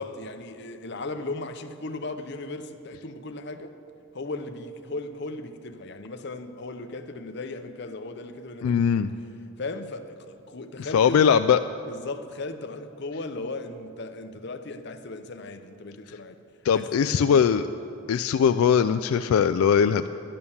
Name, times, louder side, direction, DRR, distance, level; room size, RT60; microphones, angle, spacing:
voice 1, 0.0-3.8 4.1-9.1 9.6-11.3 11.9-16.4 16.7-17.5, left 2 dB, 50° left, 0.7 m, -37 dB
voice 2, 8.6-9.1 10.8-11.6 16.7-17.7 18.1-20.1, left 7 dB, 80° left, 0.3 m, -20 dB
11.0 x 10.5 x 7.0 m
head